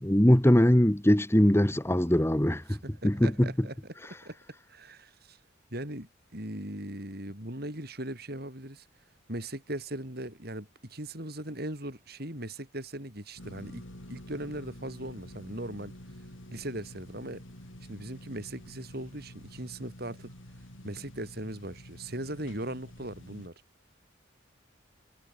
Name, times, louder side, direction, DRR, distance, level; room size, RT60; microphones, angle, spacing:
voice 1, 0.0-2.8 3.0-3.5, equal, 15° left, 1.2 m, -22 dB
voice 2, 2.7-4.0 4.3-4.4 4.7-5.4 5.7-8.9 9.3-15.9 16.5-17.4 17.9-20.3 20.8-23.5, right 1 dB, 50° right, 7.0 m, -39 dB
sound 1, 13.4-23.5, equal, 80° left, 7.5 m, -48 dB
head